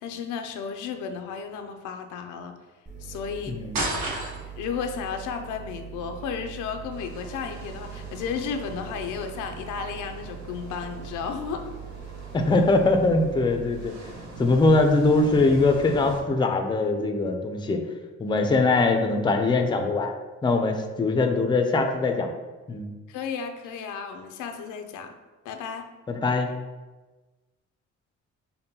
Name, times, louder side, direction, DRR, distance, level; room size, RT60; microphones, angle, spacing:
voice 1, 0.0-2.6 3.0-3.6 4.6-11.7 23.1-25.1 25.5-25.9, left 6 dB, 85° left, 6 dB, 0.5 m, -33 dB
sound 1, 2.9-13.9, right 8 dB, 25° right, 0.7 m, -41 dB
voice 2, 3.5-3.8 12.3-13.9 14.4-17.8 18.2-20.1 20.4-22.3 22.7-22.9 26.1-26.5, left 3 dB, 15° left, 5 dB, 0.4 m, -22 dB
sound 2, 3.7-4.7, right 1 dB, 90° right, 1.0 m, -29 dB
sound 3, 6.9-16.2, right 2 dB, 65° right, 0.9 m, -44 dB
5.2 x 2.2 x 2.8 m, 1.2 s
cardioid pair, 90°, 30 cm